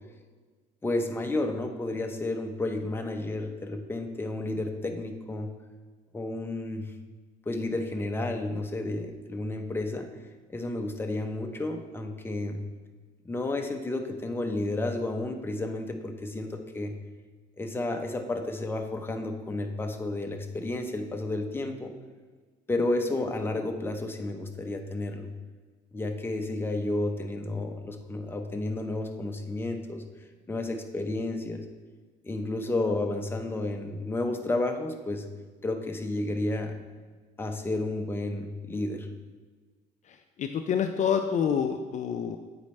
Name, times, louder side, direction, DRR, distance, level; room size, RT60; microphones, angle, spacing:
voice 1, 0.8-5.5 6.1-6.9 7.5-10.1 10.5-12.6 13.2-17.0 17.6-21.9 22.7-25.3 25.9-30.0 30.5-31.6 32.2-35.3 35.6-36.8 37.4-39.1, left 2 dB, 15° left, 4 dB, 0.6 m, -31 dB
voice 2, 40.4-42.4, left 7 dB, 45° left, 6 dB, 0.4 m, -27 dB
8.4 x 4.2 x 3.2 m, 1.4 s
cardioid pair, 110°, 17 cm